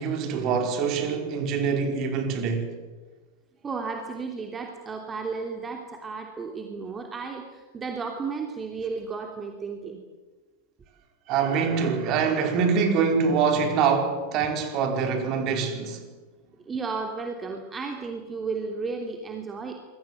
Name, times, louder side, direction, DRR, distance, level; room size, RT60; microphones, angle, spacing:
voice 1, 0.0-2.8 11.3-16.0, right 6 dB, 40° right, 5.0 m, -24 dB
voice 2, 3.6-10.0 16.6-19.7, right 4 dB, 20° right, 3.1 m, -33 dB
27.0 x 22.5 x 7.9 m
figure-of-eight pair, 90°, 0 cm